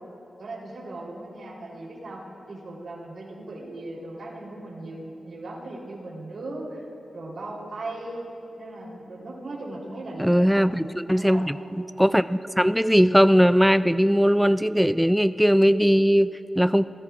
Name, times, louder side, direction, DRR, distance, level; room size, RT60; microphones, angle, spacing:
voice 1, 0.4-2.2 2.5-6.8 7.1-8.3 8.6-10.6 11.1-11.4, right 2 dB, 75° right, -4 dB, 3.5 m, -38 dB
voice 2, 10.2-16.8, equal, ahead, 13 dB, 0.3 m, -20 dB
28.0 x 16.5 x 2.5 m, 3.0 s
wide cardioid pair, 110°, 0 cm